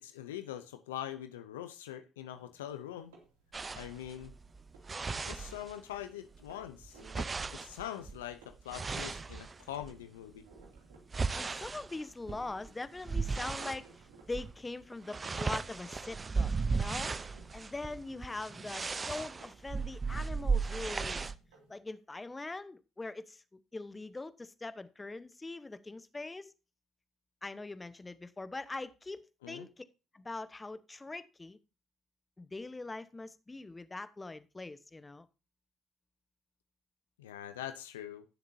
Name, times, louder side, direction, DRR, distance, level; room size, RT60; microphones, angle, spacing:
voice 1, 0.0-3.1 3.8-4.3 5.1-10.4 29.4-29.7 37.2-38.2, left 11 dB, 90° left, 0.6 m, -43 dB
Baldwin Upright Piano Creaks, 2.3-21.8, right 3 dB, 85° right, 2.6 m, -63 dB
sound 1, 3.5-6.0 6.3-10.0 10.5-13.9 14.3-14.6 14.8-21.4, right 4 dB, 35° right, 0.7 m, -36 dB
voice 2, 11.3-21.3 21.7-26.5 27.4-29.8 30.1-31.6 32.4-35.3, left 2 dB, 20° left, 1.1 m, -42 dB
17.0 x 7.2 x 2.7 m
hypercardioid pair, 55°, 0 cm